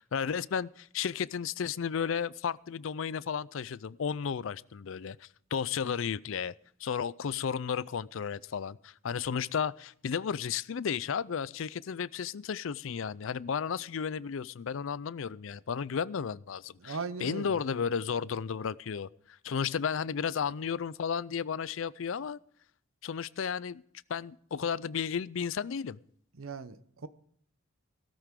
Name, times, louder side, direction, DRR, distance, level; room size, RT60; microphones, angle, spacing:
voice 1, 0.0-6.5 6.8-22.4 23.0-23.8 24.1-26.0, left 7 dB, 65° left, 0.4 m, -33 dB
voice 2, 16.8-17.6 26.4-27.1, right 4 dB, 80° right, 0.8 m, -38 dB
17.0 x 13.0 x 3.7 m
head